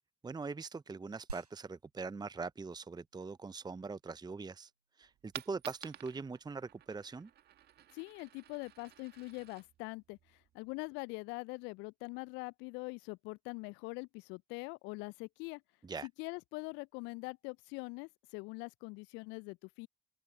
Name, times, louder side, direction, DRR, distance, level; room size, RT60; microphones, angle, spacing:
voice 1, 0.2-4.7 5.0-7.3 15.8-16.1, right 4 dB, 20° right, 0.9 m, -42 dB
Coin (dropping), 5.0-11.0, right 12 dB, 55° right, 2.0 m, -53 dB
voice 2, 7.9-15.6 16.0-19.9, left 27 dB, 65° left, 0.6 m, -43 dB
sound 1, 11.2-11.3, right 4 dB, 90° right, 4.5 m, -57 dB
open air
figure-of-eight pair, 45°, 20 cm